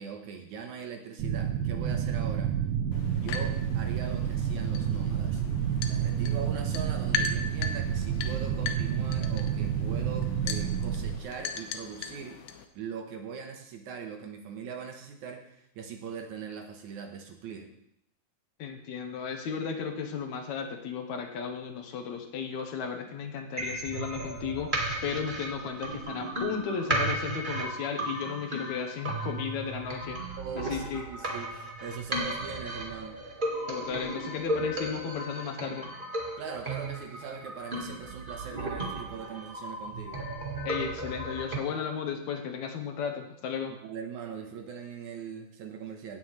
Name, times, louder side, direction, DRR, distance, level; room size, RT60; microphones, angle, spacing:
voice 1, 0.0-2.5 3.1-5.4 5.8-12.4 12.7-17.7 30.4-33.2 36.4-40.2 43.8-46.2, right 6 dB, 70° right, 3 dB, 2.4 m, -41 dB
sound 1, 1.2-11.2, right 9 dB, 85° right, 2.4 m, -29 dB
sound 2, 2.9-12.7, left 6 dB, 85° left, 2.4 m, -39 dB
voice 2, 18.6-30.3 30.7-31.0 33.7-35.9 40.7-43.8, left 6 dB, 70° left, 4 dB, 2.2 m, -34 dB
sound 3, 23.6-41.6, right 1 dB, 35° right, 0.8 m, -35 dB
17.5 x 7.6 x 3.2 m, 0.77 s
omnidirectional pair, 3.7 m